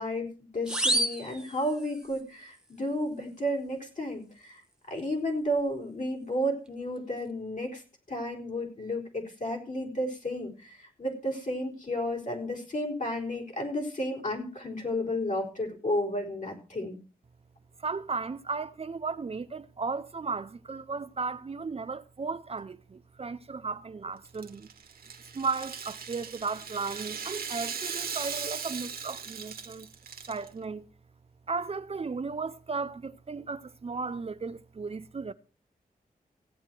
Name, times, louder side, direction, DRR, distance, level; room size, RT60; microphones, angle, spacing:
voice 1, 0.0-4.6 4.9-7.8 8.1-17.0, equal, 50° left, 4.1 m, -32 dB
sound 1, 0.7-2.2, right 1 dB, 5° right, 1.2 m, -30 dB
voice 2, 17.8-24.7 25.3-29.9 30.3-30.9 31.5-35.3, right 4 dB, 40° right, 0.6 m, -35 dB
Rattle (instrument), 24.2-30.5, right 6 dB, 75° right, 1.3 m, -38 dB
16.0 x 8.6 x 4.5 m
cardioid pair, 65°, 16 cm